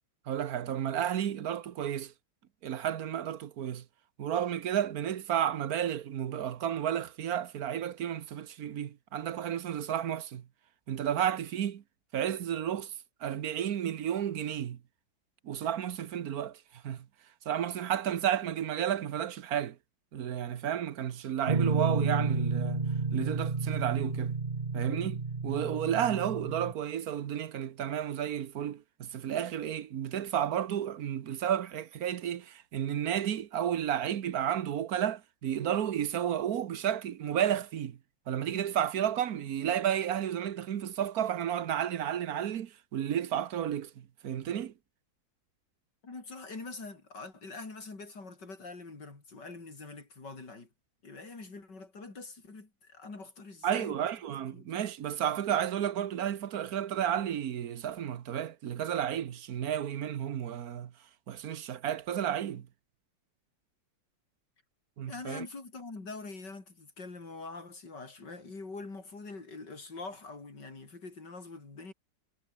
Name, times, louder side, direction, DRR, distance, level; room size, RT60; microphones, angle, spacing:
voice 1, 0.3-2.1 2.6-3.8 4.2-10.4 10.9-11.8 12.1-12.9 13.2-14.8 15.4-17.1 17.4-19.8 20.1-24.3 24.7-38.0 38.3-44.7 53.6-60.9 61.3-62.7 65.0-65.5, right 10 dB, 55° right, 1.3 m, -32 dB
Guitar, 21.5-26.7, right 4 dB, 25° right, 1.2 m, -31 dB
voice 2, 46.0-50.7 51.0-54.1 54.5-54.7 65.1-71.9, left 3 dB, 65° left, 5.1 m, -44 dB
omnidirectional pair, 2.0 m